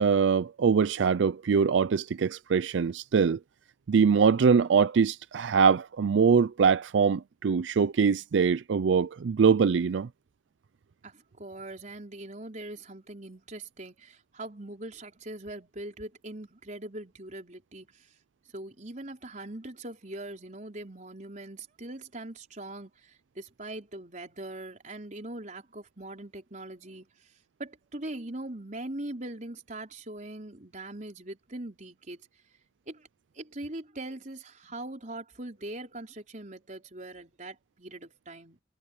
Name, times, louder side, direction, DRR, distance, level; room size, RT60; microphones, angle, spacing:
voice 1, 0.0-3.4 3.9-10.1, right 6 dB, 85° right, 0.4 m, -23 dB
voice 2, 11.0-18.1 18.5-27.3 27.6-32.2 32.9-33.1 33.3-38.6, right 1 dB, 45° right, 4.6 m, -41 dB
head